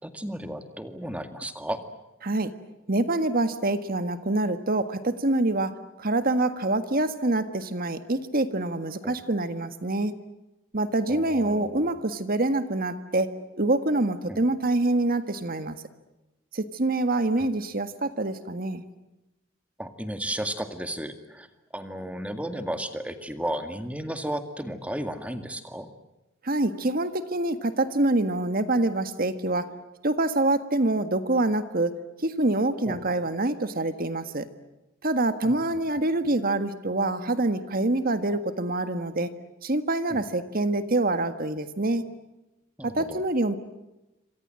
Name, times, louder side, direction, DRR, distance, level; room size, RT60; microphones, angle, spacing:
voice 1, 0.0-1.9 9.0-9.1 11.1-12.0 14.3-14.4 17.4-17.5 19.8-21.5 21.7-25.9 32.9-33.1 35.4-35.6 40.1-40.2 42.8-43.2, right 1 dB, 5° right, 8 dB, 2.0 m, -34 dB
voice 2, 2.9-10.1 10.7-15.8 16.5-18.8 26.4-29.7 30.0-34.5 35.0-39.3 39.6-42.1 42.8-43.5, right 2 dB, 45° right, 10 dB, 1.7 m, -26 dB
28.0 x 25.5 x 7.7 m, 0.99 s
head